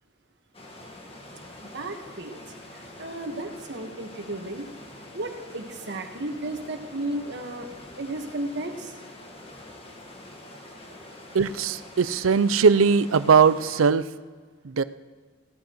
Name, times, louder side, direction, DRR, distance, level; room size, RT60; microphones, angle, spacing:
sound 1, 0.5-13.9, left 1 dB, 30° left, 1.6 m, -45 dB
voice 1, 1.7-4.7 5.1-7.7 8.0-8.9, right 1 dB, 60° right, 4 dB, 1.4 m, -34 dB
voice 2, 11.3-14.1 14.6-14.8, right 5 dB, 85° right, 15 dB, 0.5 m, -20 dB
17.0 x 14.5 x 3.1 m, 1.5 s
head